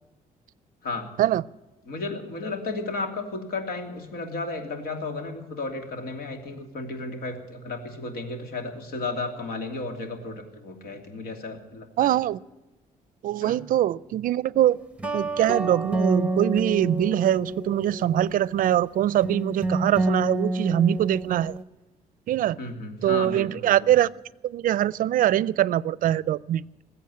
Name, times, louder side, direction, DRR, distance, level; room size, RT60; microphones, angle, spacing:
voice 1, 1.8-12.1 13.4-13.6 22.6-23.7, left 3 dB, 85° left, 5 dB, 2.9 m, -33 dB
voice 2, 12.0-12.4 13.2-14.8 15.1-21.5 22.3-22.6 23.0-24.1 24.4-26.6, right 12 dB, 65° right, 22 dB, 0.4 m, -23 dB
sound 1, 15.0-21.6, right 2 dB, 10° right, 1.0 m, -28 dB
20.5 x 8.1 x 8.6 m, 1.1 s
cardioid pair, 130°, 15 cm